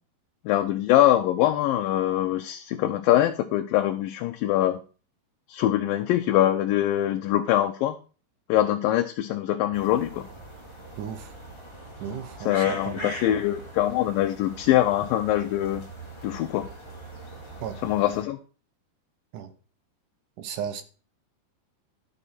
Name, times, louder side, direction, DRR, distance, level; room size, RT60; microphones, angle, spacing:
voice 1, 0.5-4.8 5.5-8.0 8.5-10.3 12.4-15.9 16.2-16.7 17.8-18.4, left 13 dB, 80° left, 6 dB, 2.2 m, -23 dB
sound 1, 9.7-18.2, right 1 dB, 25° left, 0.6 m, -41 dB
voice 2, 11.0-11.3 12.0-13.4 17.6-17.8 19.3-19.5 20.4-20.8, right 8 dB, 70° right, 10 dB, 2.2 m, -35 dB
12.0 x 6.3 x 4.2 m, 0.36 s
omnidirectional pair, 4.4 m